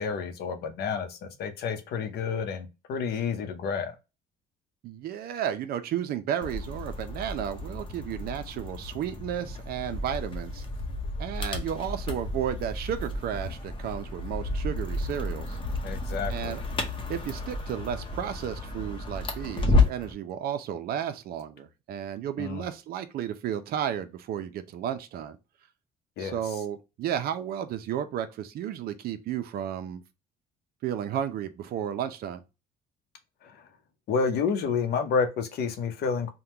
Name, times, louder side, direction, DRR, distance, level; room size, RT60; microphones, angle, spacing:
voice 1, 0.0-3.9 15.8-16.6 22.4-22.6 26.2-26.4 34.1-36.3, left 5 dB, 70° left, 0.7 m, -29 dB
voice 2, 4.8-10.6 11.2-15.6 16.3-16.6 17.1-25.4 26.2-30.0 30.8-32.4, right 9 dB, 65° right, 0.5 m, -33 dB
sound 1, 6.4-20.1, left 2 dB, 30° left, 0.8 m, -31 dB
3.5 x 2.2 x 2.8 m
cardioid pair, 110°, 17 cm